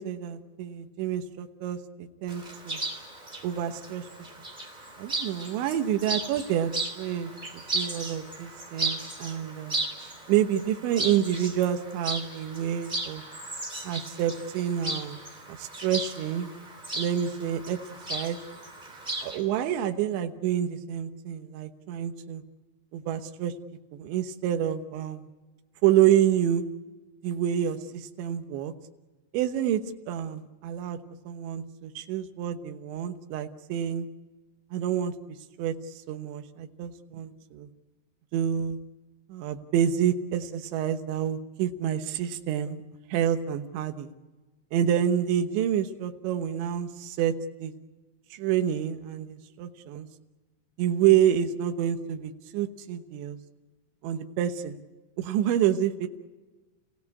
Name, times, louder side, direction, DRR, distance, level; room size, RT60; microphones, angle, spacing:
voice 1, 0.0-2.8 3.4-4.0 5.0-13.2 13.8-15.2 15.5-16.5 16.9-17.8 18.1-18.4 19.2-22.4 22.9-23.5 23.9-25.3 25.8-26.6 27.2-28.7 29.3-29.8 30.1-31.0 31.3-34.1 34.7-35.1 35.6-35.7 36.1-37.7 38.3-38.8 39.3-42.8 43.1-44.1 44.7-47.3 47.6-47.7 48.3-50.1 50.8-53.4 54.0-54.8 55.2-56.1, right 10 dB, 80° right, 7 dB, 3.4 m, -28 dB
Chirp tweet, 2.3-19.4, right 2 dB, 15° right, 2.5 m, -36 dB
29.0 x 17.0 x 8.4 m, 1.2 s
omnidirectional pair, 5.3 m